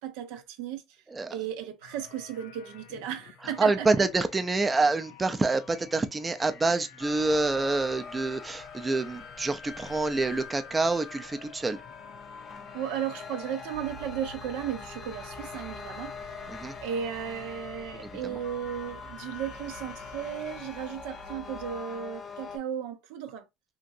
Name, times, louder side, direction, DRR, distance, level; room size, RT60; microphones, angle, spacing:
voice 1, 0.0-1.0 1.3-3.9 12.7-16.3 16.8-23.4, right 9 dB, 85° right, 0.5 m, -35 dB
sound 1, 1.8-20.7, left 7 dB, 85° left, 0.5 m, -51 dB
voice 2, 3.4-11.8 16.5-16.7 17.9-18.4, right 3 dB, 20° right, 0.4 m, -27 dB
sound 2, 7.0-22.6, left 5 dB, 45° left, 0.6 m, -43 dB
sound 3, 13.7-21.8, right 4 dB, 60° right, 0.8 m, -51 dB
2.8 x 2.5 x 2.5 m
supercardioid pair, 100°, 0 cm